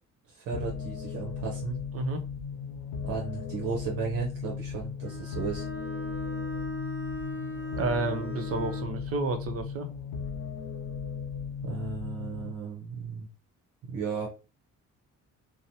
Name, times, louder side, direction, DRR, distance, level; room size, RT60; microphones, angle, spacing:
voice 1, 0.3-1.8 3.0-5.7 11.6-13.3 13.9-14.3, right 5 dB, 90° right, -1 dB, 0.7 m, -34 dB
sound 1, 0.5-12.5, left 6 dB, 80° left, 0.5 m, -37 dB
Bowed string instrument, 5.0-9.0, left 1 dB, 5° right, 1.0 m, -38 dB
voice 2, 7.8-9.9, right 3 dB, 50° right, 7 dB, 0.6 m, -30 dB
2.8 x 2.0 x 2.6 m, 0.32 s
cardioid pair, 90°, 30 cm